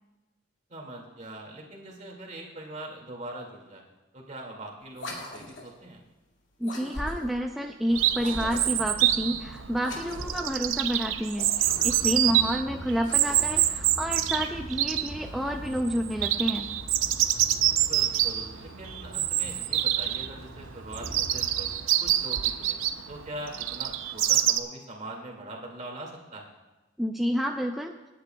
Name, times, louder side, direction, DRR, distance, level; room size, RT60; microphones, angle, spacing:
voice 1, 0.7-3.8 4.1-6.0 12.4-12.5 17.5-21.7 22.0-22.8 23.1-26.5, right 1 dB, 40° right, 0 dB, 2.2 m, -42 dB
sound 1, 4.9-5.8 6.6-7.4 8.1-8.9 9.8-10.5 11.3-12.2 12.9-13.8, left 1 dB, 75° left, 2.1 m, -40 dB
voice 2, 6.6-16.7 27.0-28.0, equal, ahead, 2 dB, 0.5 m, -29 dB
Chirp tweet, 7.9-24.6, right 12 dB, 90° right, 0.6 m, -27 dB
sound 2, 11.6-21.7, equal, 60° left, 4.2 m, -43 dB
27.0 x 9.9 x 2.3 m, 1.1 s
head